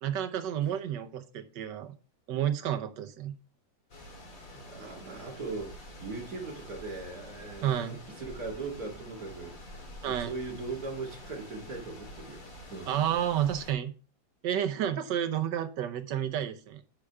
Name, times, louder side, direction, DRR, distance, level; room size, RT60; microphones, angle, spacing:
voice 1, 0.0-1.9 2.3-3.4 7.6-8.0 10.0-10.3 12.9-13.9 14.4-16.8, right 10 dB, 70° right, 9 dB, 1.4 m, -30 dB
sound 1, 3.9-13.7, left 1 dB, 45° left, 2.4 m, -47 dB
voice 2, 4.5-9.8 10.0-12.4 12.7-13.0, right 3 dB, 50° right, 0 dB, 2.4 m, -39 dB
9.9 x 4.9 x 3.5 m, 0.36 s
omnidirectional pair, 2.1 m